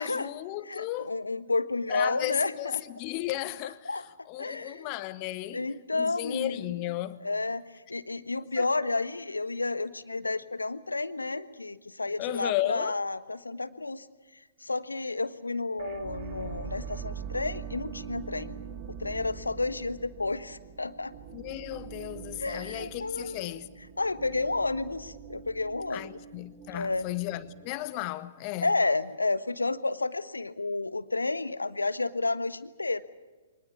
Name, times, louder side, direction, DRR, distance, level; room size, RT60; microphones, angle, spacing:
voice 1, 0.0-1.2 1.9-3.9 4.3-5.6 5.9-7.2 8.6-8.7 12.2-13.0 21.3-23.7 25.9-28.7, left 16 dB, 35° left, 1.2 m, -34 dB
voice 2, 0.6-2.8 3.8-4.0 4.4-4.9 5.5-6.7 7.2-14.1 14.6-18.6 19.0-21.1 22.4-23.6 24.0-26.2 26.7-27.0 28.6-33.0, left 3 dB, 80° left, 1.3 m, -31 dB
sound 1, 15.8-27.7, right 7 dB, 35° right, 1.8 m, -43 dB
24.5 x 19.5 x 8.4 m
figure-of-eight pair, 120°, 0 cm